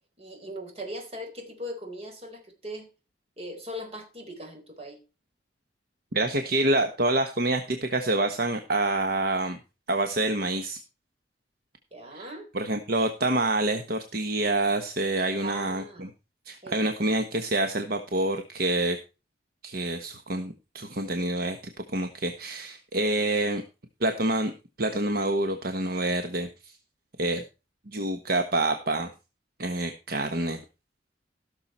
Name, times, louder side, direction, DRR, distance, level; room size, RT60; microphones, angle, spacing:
voice 1, 0.2-2.9 3.4-5.0 11.9-12.5 15.4-16.1 16.6-16.8, equal, 35° right, 4.0 m, -39 dB
voice 2, 6.1-9.6 9.9-10.8 12.1-12.3 12.5-16.1 16.5-19.0 19.6-21.6 21.9-23.6 24.0-24.5 24.8-26.7 27.2-27.4 27.9-29.1 29.6-30.6, right 2 dB, 55° right, 1.2 m, -27 dB
16.5 x 6.8 x 4.4 m
head